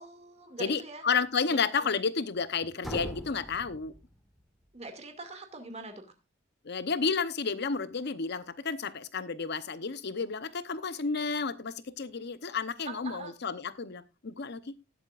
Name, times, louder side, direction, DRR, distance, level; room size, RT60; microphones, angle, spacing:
voice 1, 0.0-1.0 1.5-1.9 4.7-6.0 12.9-13.3, right 2 dB, 35° right, 6 dB, 2.2 m, -43 dB
voice 2, 0.6-3.9 6.6-14.7, left 5 dB, 55° left, 14 dB, 0.8 m, -31 dB
sound 1, 2.8-4.7, equal, ahead, 1.2 m, -42 dB
18.5 x 8.0 x 2.5 m, 0.25 s
head